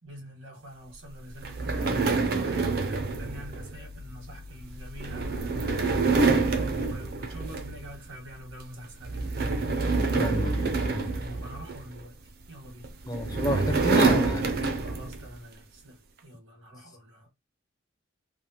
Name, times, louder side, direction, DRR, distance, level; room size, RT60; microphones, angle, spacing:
voice 1, 0.0-6.3 6.8-9.5 11.1-12.2 12.5-12.9 14.8-17.3, equal, 90° right, 1.4 m, -45 dB
sound 1, 1.4-8.0 8.3-8.6 9.0-12.0 12.8-15.3, right 3 dB, 50° right, 0.4 m, -27 dB
voice 2, 10.1-11.4 13.1-14.5, left 1 dB, 20° left, 0.4 m, -31 dB
3.2 x 2.0 x 2.7 m
head